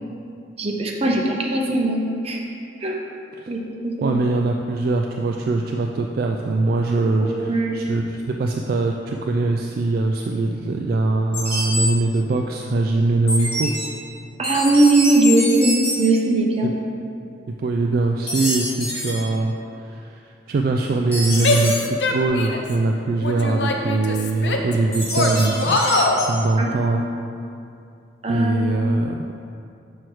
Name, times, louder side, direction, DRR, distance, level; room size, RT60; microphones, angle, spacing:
voice 1, 0.6-2.4 2.8-3.0 3.5-3.6 3.8-4.1 7.2-7.8 14.4-16.7 26.6-26.8 28.2-28.5, right 2 dB, 35° right, -1 dB, 0.7 m, -19 dB
voice 2, 4.0-13.7 16.6-16.7 17.6-20.2 20.5-25.8 26.3-27.0 28.3-29.2, right 2 dB, 55° right, 1 dB, 0.3 m, -22 dB
sound 1, 11.3-11.9 13.3-13.8 14.4-16.0 18.3-19.1 21.1-21.7 24.9-26.3, equal, 35° left, 1.5 m, -26 dB
Female speech woman speaking / Yell, 21.4-22.7 23.2-24.7 25.1-26.2, left 2 dB, 70° left, 0.6 m, -22 dB
6.2 x 4.5 x 4.5 m, 2.5 s
head